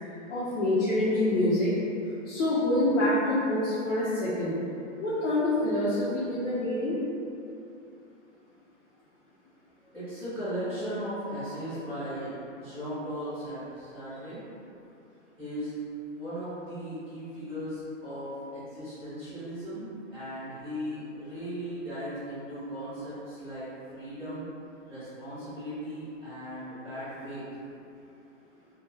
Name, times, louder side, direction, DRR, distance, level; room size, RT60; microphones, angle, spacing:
voice 1, 0.3-1.7 2.2-4.6 5.0-7.0, left 1 dB, 70° left, -11 dB, 0.8 m, -26 dB
voice 2, 9.8-14.4 15.4-15.8 16.1-24.5 24.9-27.5, equal, 10° left, -18 dB, 0.6 m, -37 dB
2.2 x 2.2 x 3.2 m, 2.6 s
hypercardioid pair, 160°, 39 cm